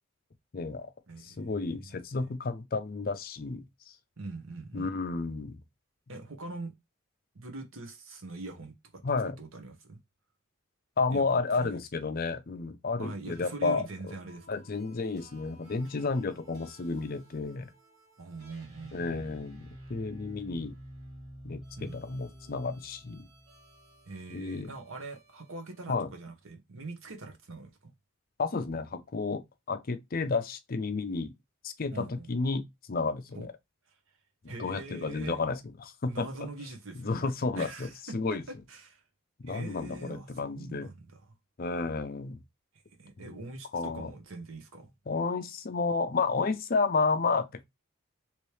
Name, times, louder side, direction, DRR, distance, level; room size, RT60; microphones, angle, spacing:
voice 1, 0.5-0.9 1.2-3.6 4.7-5.6 9.0-9.4 11.0-14.1 14.5-17.7 18.9-20.7 21.4-23.3 24.3-24.7 25.9-26.1 28.4-31.3 31.6-33.5 34.6-36.5 37.0-38.4 39.4-40.9 41.6-42.4 43.2-43.4 43.7-44.1 45.1-47.6, left 4 dB, 45° left, 0.5 m, -31 dB
voice 2, 1.1-2.3 4.2-4.9 6.1-6.7 7.3-10.0 11.1-11.2 11.6-11.8 13.0-14.5 18.2-19.2 21.8-22.1 24.0-27.9 31.9-32.3 33.3-33.5 34.5-35.4 36.1-38.2 38.7-39.0 39.5-41.2 43.0-44.9, right 3 dB, 75° right, 1.0 m, -43 dB
sound 1, 13.3-25.8, right 1 dB, 35° right, 2.0 m, -52 dB
3.1 x 2.9 x 3.2 m
head